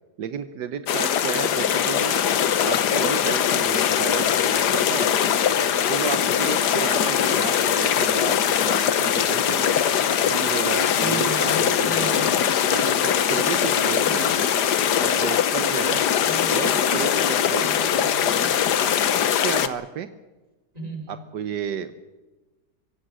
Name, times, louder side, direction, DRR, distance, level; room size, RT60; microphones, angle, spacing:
voice 1, 0.2-2.2 2.6-5.3 5.9-9.8 10.2-12.2 12.7-14.4 14.8-16.0 16.5-18.0 19.4-20.1 21.1-21.9, right 8 dB, 80° right, 10 dB, 1.5 m, -32 dB
sound 1, 0.9-19.7, left 9 dB, 70° left, 1.6 m, -21 dB
voice 2, 11.0-12.4 14.0-14.3 16.2-16.9 17.6-18.6 20.7-21.2, right 2 dB, 20° right, 4 dB, 4.5 m, -36 dB
24.5 x 16.5 x 7.6 m, 1.1 s
omnidirectional pair, 1.9 m